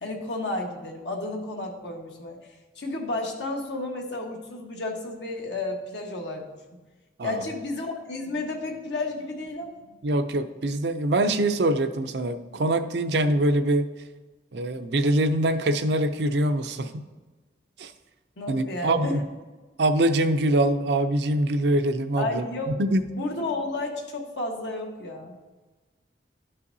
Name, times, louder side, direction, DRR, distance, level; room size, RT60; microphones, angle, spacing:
voice 1, 0.0-2.4 2.7-6.4 7.2-9.9 18.4-19.1 22.1-22.8 23.1-25.3, left 2 dB, 70° left, 1 dB, 1.3 m, -32 dB
voice 2, 10.0-13.9 14.5-17.0 17.8-17.9 18.5-19.2 19.8-22.4 22.8-23.0, right 1 dB, 65° right, 9 dB, 0.5 m, -24 dB
12.5 x 5.6 x 2.7 m, 1.3 s
head